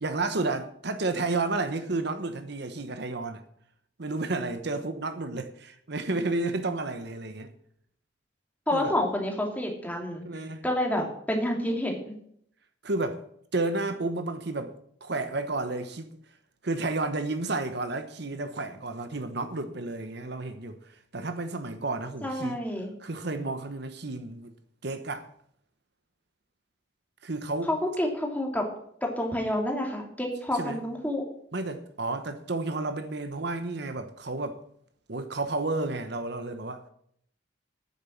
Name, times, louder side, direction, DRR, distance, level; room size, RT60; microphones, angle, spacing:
voice 1, 0.0-3.4 4.0-7.5 8.7-8.9 10.2-10.6 12.8-13.2 13.5-14.7 15.0-16.1 16.6-22.6 23.0-24.5 24.8-25.3 27.2-27.7 30.6-30.8 31.5-34.6 35.1-36.8, right 2 dB, 60° right, 1.0 m, -31 dB
voice 2, 8.7-10.2 10.6-12.0 22.2-22.9 27.7-28.7 29.0-31.2, left 1 dB, 10° left, 2.6 m, -28 dB
9.5 x 7.4 x 8.6 m
head